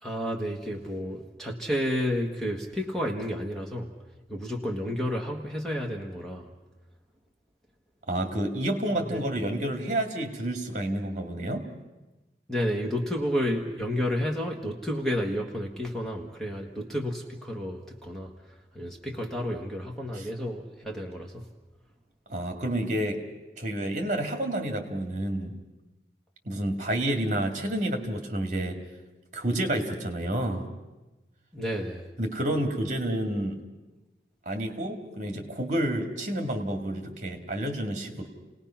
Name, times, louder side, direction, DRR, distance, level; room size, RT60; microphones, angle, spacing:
voice 1, 0.0-3.9 4.3-6.5 9.1-9.2 12.5-18.3 18.7-21.5 31.5-32.1, equal, ahead, 0 dB, 1.6 m, -31 dB
voice 2, 8.1-11.7 20.1-20.3 22.3-23.2 23.6-25.5 26.4-28.8 29.3-30.7 32.2-33.6 34.5-38.3, right 1 dB, 40° right, 4 dB, 2.3 m, -29 dB
29.5 x 18.5 x 5.8 m, 1.1 s
head